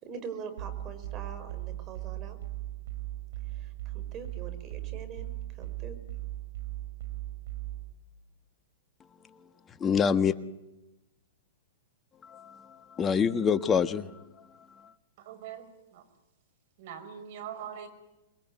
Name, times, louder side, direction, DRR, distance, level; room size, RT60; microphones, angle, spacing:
voice 1, 0.0-2.4 3.5-6.0, right 6 dB, 35° right, 5.6 m, -43 dB
sound 1, 0.6-7.9, right 15 dB, 75° right, 4.6 m, -38 dB
voice 2, 9.7-10.3 12.2-14.9, left 6 dB, 20° left, 1.4 m, -27 dB
voice 3, 15.2-16.1 16.8-17.9, right 8 dB, 55° right, 5.4 m, -42 dB
27.0 x 22.0 x 9.4 m
hypercardioid pair, 120°, 0 cm